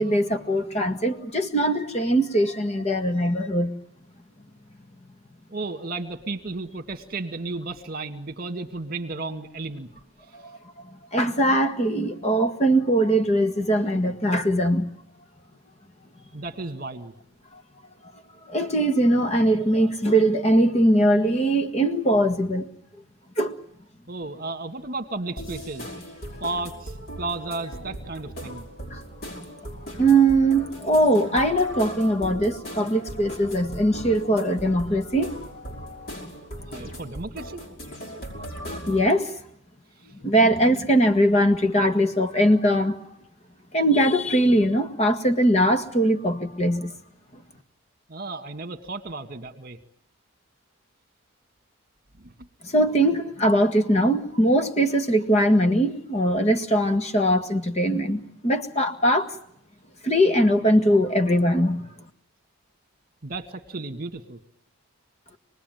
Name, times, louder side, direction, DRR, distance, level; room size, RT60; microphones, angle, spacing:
voice 1, 0.0-3.7 11.1-14.9 18.5-22.7 23.4-23.6 28.9-29.0 30.0-36.2 38.9-39.3 40.2-43.0 43.7-46.9 52.6-59.3 60.0-61.8, right 1 dB, 30° left, 8 dB, 1.7 m, -21 dB
voice 2, 5.5-9.9 16.3-17.1 24.1-25.9 26.4-28.6 36.7-37.6 48.1-49.8 52.2-52.3 63.2-64.4, right 3 dB, 45° right, 8 dB, 1.9 m, -33 dB
sound 1, 25.4-39.1, equal, 45° left, 5.6 m, -38 dB
27.0 x 20.0 x 9.3 m, 0.68 s
head